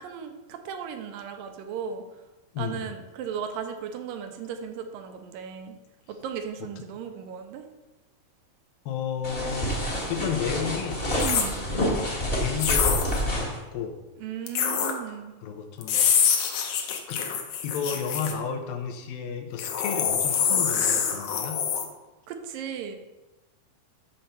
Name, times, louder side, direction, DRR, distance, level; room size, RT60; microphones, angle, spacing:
voice 1, 0.0-2.1 2.6-5.8 6.1-7.7 11.2-11.6 14.2-15.3 22.3-23.0, right 7 dB, 90° right, 6 dB, 2.4 m, -36 dB
voice 2, 2.5-2.9 8.9-9.8 10.1-11.0 12.2-14.0 15.4-16.0 17.1-17.2 17.6-21.6, left 6 dB, 90° left, 5 dB, 2.7 m, -32 dB
sound 1, 9.2-13.6, equal, 35° left, 0.9 m, -28 dB
sound 2, 11.1-11.5 12.6-13.2 14.5-14.9 15.8-18.3 19.6-21.8, left 7 dB, 70° left, 2.0 m, -25 dB
7.4 x 4.3 x 6.7 m, 1.1 s
omnidirectional pair, 4.0 m